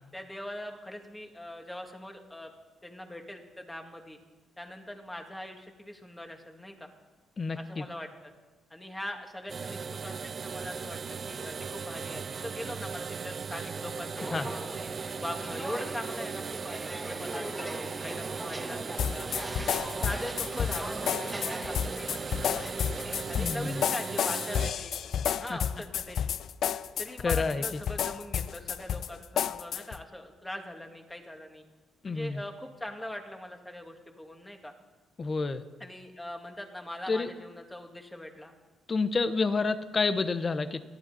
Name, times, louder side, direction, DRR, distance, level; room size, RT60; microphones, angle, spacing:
voice 1, 0.1-2.5 2.8-4.2 4.6-6.9 7.5-8.3 8.7-14.8 15.2-19.3 19.9-22.9 23.3-24.9 25.4-26.3 27.0-31.6 32.1-34.7 35.8-38.5, left 1 dB, 10° left, 3 dB, 2.3 m, -41 dB
voice 2, 7.4-7.8 14.3-14.5 23.4-23.8 25.5-25.6 27.2-27.8 32.0-32.4 35.2-35.6 37.1-37.3 38.9-40.8, left 4 dB, 35° left, 12 dB, 1.0 m, -29 dB
sound 1, 9.5-24.7, right 6 dB, 45° right, 0.5 m, -38 dB
Walk footsteps, 14.2-23.2, right 1 dB, 5° right, 1.6 m, -41 dB
sound 2, 19.0-30.0, left 9 dB, 65° left, 0.5 m, -31 dB
29.5 x 11.5 x 4.3 m, 1.3 s
cardioid pair, 90°, 0 cm